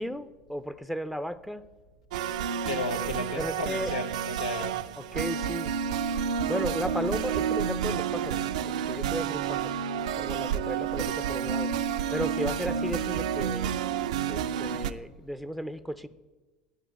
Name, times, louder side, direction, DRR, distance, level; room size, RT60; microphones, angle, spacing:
voice 1, 0.0-1.6 3.4-3.9 5.1-5.7 6.5-8.4 8.9-9.7 10.2-11.7 12.1-13.7 14.3-16.1, equal, ahead, 13 dB, 0.6 m, -34 dB
sound 1, 2.1-14.9, right 8 dB, 75° right, 0.5 m, -30 dB
voice 2, 2.7-4.8, left 4 dB, 85° left, 8 dB, 0.9 m, -34 dB
11.0 x 5.1 x 8.5 m, 1.2 s
hypercardioid pair, 75°, 4 cm